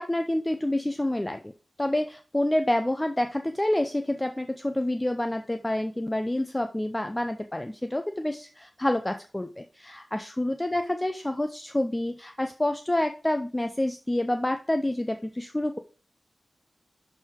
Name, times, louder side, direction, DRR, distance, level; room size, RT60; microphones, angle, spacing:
voice 1, 0.0-1.4 1.8-15.8, left 1 dB, 10° left, 7 dB, 0.5 m, -28 dB
11.5 x 4.7 x 3.5 m, 0.37 s
wide cardioid pair, 135°, 0 cm